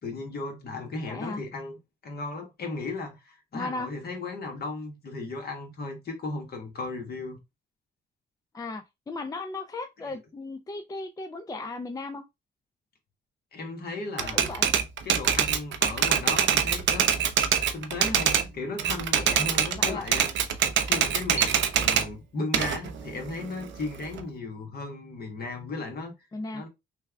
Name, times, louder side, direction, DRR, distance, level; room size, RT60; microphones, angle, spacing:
voice 1, 0.0-1.8 2.0-7.4 10.0-10.2 13.5-14.5 15.0-17.1 17.7-20.3 20.8-26.1 26.5-26.7, left 3 dB, 50° left, 1.3 m, -35 dB
voice 2, 1.1-1.4 3.5-3.9 8.5-12.2 14.2-14.7 19.8-20.1 26.3-26.6, left 2 dB, 20° left, 0.4 m, -36 dB
Typewriter, 14.2-18.5 18.8-22.1 22.5-24.2, right 8 dB, 65° right, 0.6 m, -24 dB
3.3 x 2.3 x 3.4 m
cardioid pair, 90°, 20 cm